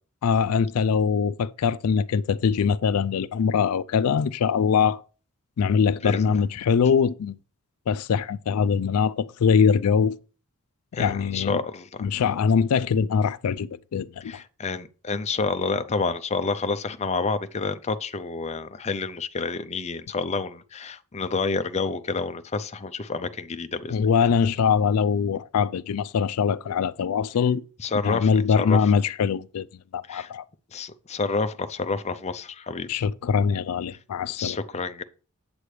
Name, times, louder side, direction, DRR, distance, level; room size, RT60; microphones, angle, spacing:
voice 1, 0.2-5.0 5.6-7.4 7.9-10.2 11.0-11.6 12.0-14.3 23.9-27.6 28.0-29.7 29.9-30.4 32.9-34.6, left 6 dB, 80° left, 0.4 m, -22 dB
voice 2, 6.0-6.4 10.9-12.1 14.2-24.0 27.8-28.8 30.1-30.3 30.7-33.0 34.4-35.0, left 4 dB, 30° left, 0.5 m, -29 dB
8.2 x 7.8 x 3.2 m
head